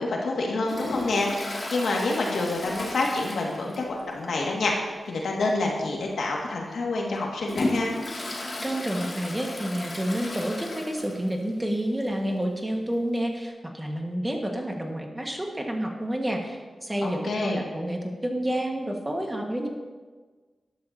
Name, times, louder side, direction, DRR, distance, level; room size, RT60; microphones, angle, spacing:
voice 1, 0.0-7.9 17.0-17.6, left 2 dB, 85° left, -1 dB, 2.1 m, -27 dB
Toilet flush, 0.6-4.1 4.4-4.5 4.9-5.0 5.8-6.0 6.5-11.4 11.7-11.8 12.0-12.1 13.2-13.3, left 1 dB, 45° left, 2.5 m, -34 dB
voice 2, 8.6-19.7, right 1 dB, 15° right, 1 dB, 1.7 m, -29 dB
12.5 x 11.5 x 2.9 m, 1.4 s
cardioid pair, 65°, 0 cm